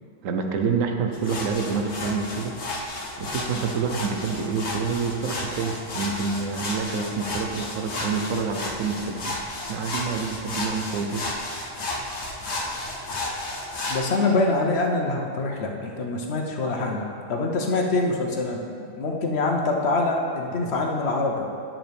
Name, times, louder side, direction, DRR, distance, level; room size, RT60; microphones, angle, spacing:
voice 1, 0.2-2.6 3.2-9.4 9.7-11.2, right 5 dB, 85° right, 4 dB, 1.1 m, -27 dB
sound 1, 1.1-14.0, left 2 dB, 75° left, 1.5 m, -32 dB
voice 2, 13.9-21.5, left 2 dB, 60° left, 1 dB, 1.0 m, -25 dB
9.2 x 7.4 x 3.5 m, 2.4 s
omnidirectional pair, 1.3 m